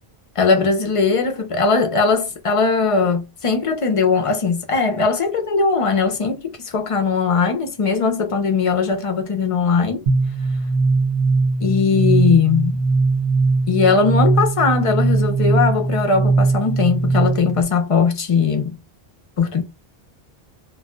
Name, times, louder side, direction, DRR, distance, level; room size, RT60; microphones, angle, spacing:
voice 1, 0.4-10.0 11.6-12.8 13.7-18.8 19.4-19.6, left 5 dB, 45° left, 0.5 m, -19 dB
sound 1, 10.1-17.6, right 3 dB, 85° right, 0.9 m, -19 dB
2.3 x 2.1 x 3.7 m
omnidirectional pair, 1.0 m